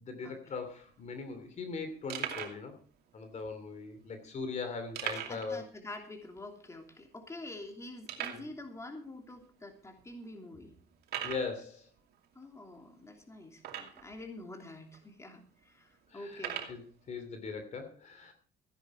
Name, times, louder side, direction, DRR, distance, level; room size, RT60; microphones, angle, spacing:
voice 1, 0.0-2.8 3.1-5.6 8.2-8.5 11.2-11.9 16.1-18.3, left 4 dB, 45° left, 8 dB, 2.7 m, -40 dB
sound 1, 0.6-0.7 0.9-1.1 1.6-1.7 2.1-2.6 3.4-3.5 4.9-5.5 5.8-5.9 6.4-6.5 7.0-7.1 8.1-8.5 9.3-9.4 10.0-10.1 11.0-11.5 13.6-14.1 14.9-15.0 16.3-16.8, right 10 dB, 70° right, 2.6 m, -39 dB
voice 2, 5.2-10.7 12.3-16.6, left 2 dB, 15° left, 4 dB, 3.0 m, -47 dB
16.0 x 10.0 x 4.8 m, 0.41 s
cardioid pair, 110°, 17 cm